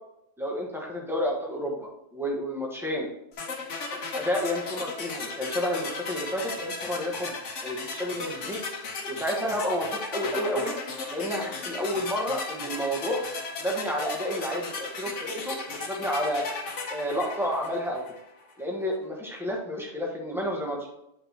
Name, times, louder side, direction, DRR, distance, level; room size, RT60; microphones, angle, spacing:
voice 1, 0.4-3.1 4.1-7.4 7.6-8.6 9.1-10.7 11.1-13.2 13.6-16.5 16.9-18.0 18.6-20.9, equal, ahead, -1 dB, 1.2 m, -30 dB
sound 1, 3.4-18.3, left 3 dB, 65° left, 1.4 m, -36 dB
8.6 x 5.1 x 2.9 m, 0.82 s
omnidirectional pair, 1.4 m